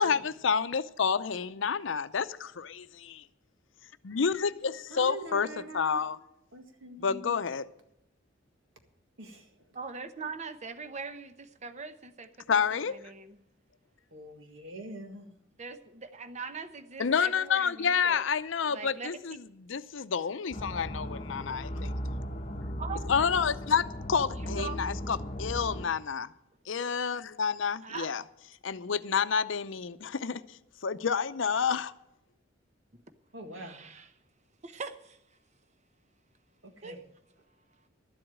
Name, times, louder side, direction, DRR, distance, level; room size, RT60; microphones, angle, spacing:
voice 1, 0.0-3.2 4.0-5.5 5.7-6.2 7.0-7.7 12.5-12.9 17.0-21.9 23.1-26.3 26.7-28.2 28.6-30.4 30.8-31.9, left 6 dB, 75° left, 0.6 m, -29 dB
voice 2, 4.9-6.1 6.5-7.3 9.2-9.5 14.1-15.3 33.3-33.8 36.6-37.0, right 1 dB, 80° right, 1.9 m, -44 dB
voice 3, 9.7-13.4 15.6-18.2 18.6-19.4 22.8-23.2 24.4-24.8 27.8-28.3 33.5-34.1 34.6-35.2 36.8-37.0, right 4 dB, 35° right, 0.8 m, -42 dB
sound 1, 20.5-25.9, equal, 35° left, 1.0 m, -37 dB
12.5 x 7.8 x 8.7 m
head